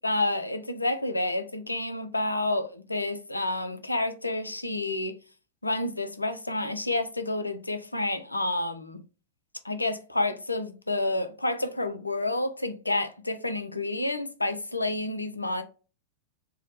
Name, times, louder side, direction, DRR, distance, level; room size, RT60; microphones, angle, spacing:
voice 1, 0.0-5.1 5.6-9.0 9.6-15.6, left 2 dB, 85° left, 0.3 m, -29 dB
2.7 x 2.0 x 2.8 m
figure-of-eight pair, 90°, 0 cm